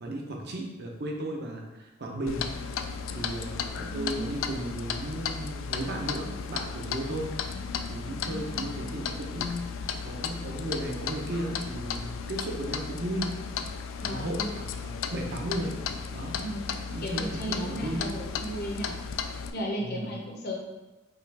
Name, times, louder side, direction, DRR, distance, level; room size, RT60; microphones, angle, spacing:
voice 1, 0.0-2.8 3.1-7.3 7.9-13.4 14.0-15.8 16.1-16.4 16.9-18.1 19.8-20.1, right 1 dB, 55° right, 0 dB, 0.7 m, -35 dB
Clock, 2.3-19.5, left 6 dB, 80° left, 0.3 m, -35 dB
voice 2, 3.9-4.2 8.1-8.8 14.0-14.5 16.4-16.7 17.0-19.0 19.5-20.5, equal, 50° left, 0 dB, 0.8 m, -35 dB
5.5 x 2.4 x 3.4 m, 1.1 s
head